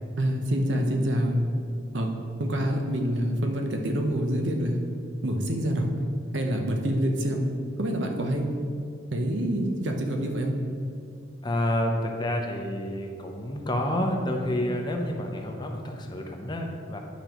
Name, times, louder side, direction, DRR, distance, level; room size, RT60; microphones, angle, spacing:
voice 1, 0.2-1.4 1.9-4.8 5.2-5.9 6.3-7.5 7.8-8.5 9.1-10.6, equal, 70° right, 2 dB, 0.8 m, -26 dB
voice 2, 11.4-17.0, left 1 dB, 25° left, 2 dB, 0.6 m, -29 dB
9.8 x 5.1 x 3.0 m, 2.4 s
head